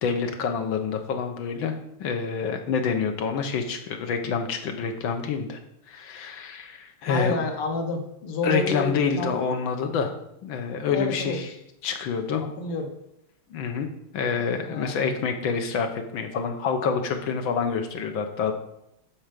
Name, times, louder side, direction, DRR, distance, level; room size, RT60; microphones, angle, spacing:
voice 1, 0.0-5.6 5.9-7.4 8.4-10.1 10.4-11.5 11.8-12.4 13.5-13.9 14.1-18.5, left 5 dB, 65° left, 5 dB, 1.7 m, -27 dB
voice 2, 7.1-9.3 10.9-11.4 12.4-12.9 14.6-15.1, left 3 dB, 90° left, 4 dB, 2.1 m, -29 dB
12.0 x 4.5 x 5.1 m, 0.81 s
omnidirectional pair, 2.4 m